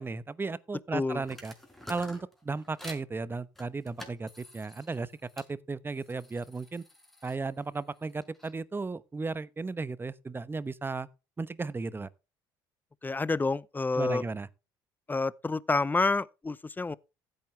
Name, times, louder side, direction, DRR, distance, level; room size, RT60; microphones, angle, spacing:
voice 1, 0.0-1.5 1.9-6.8 7.2-11.1 11.4-12.1 13.9-14.5, right 3 dB, 20° right, 0.9 m, -35 dB
voice 2, 0.9-1.2 13.0-14.2 15.1-17.0, left 3 dB, 20° left, 0.7 m, -28 dB
sound 1, 1.2-3.1 3.6-5.5 5.9-8.5, left 1 dB, 5° left, 5.3 m, -50 dB
15.0 x 9.1 x 3.3 m
hypercardioid pair, 70°, 10 cm